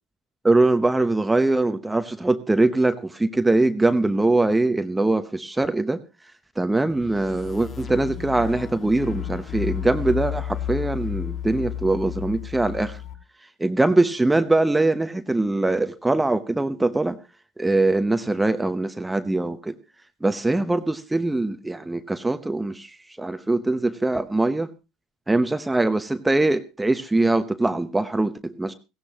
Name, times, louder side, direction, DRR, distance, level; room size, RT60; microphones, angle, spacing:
voice 1, 0.4-6.0 6.6-13.0 13.6-17.2 17.6-19.7 20.2-24.7 25.3-28.7, right 2 dB, 10° right, 10 dB, 0.8 m, -22 dB
sound 1, 6.9-13.1, left 11 dB, 35° left, 1.9 m, -32 dB
16.0 x 16.0 x 2.9 m, 0.28 s
hypercardioid pair, 80°, 0 cm